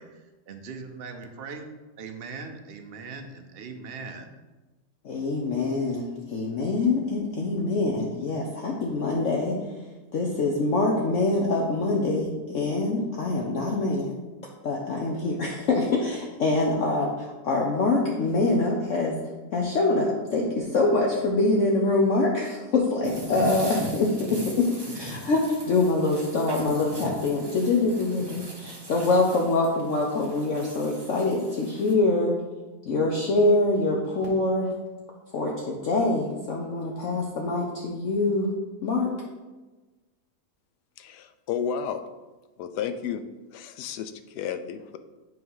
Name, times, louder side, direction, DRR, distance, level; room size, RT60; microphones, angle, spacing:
voice 1, 0.0-1.7 2.0-4.3, right 4 dB, 50° right, 5 dB, 0.7 m, -40 dB
voice 2, 5.0-9.8 10.1-14.2 14.6-19.2 19.5-32.4 32.8-34.7 35.3-38.5 38.8-39.2, left 2 dB, 60° left, -1 dB, 1.0 m, -25 dB
sound 1, 23.0-31.9, equal, 20° right, 0.7 m, -39 dB
voice 3, 41.0-42.0 42.6-43.2 43.5-45.0, left 8 dB, 80° left, 9 dB, 1.1 m, -32 dB
7.8 x 3.3 x 5.5 m, 1.2 s
omnidirectional pair, 1.7 m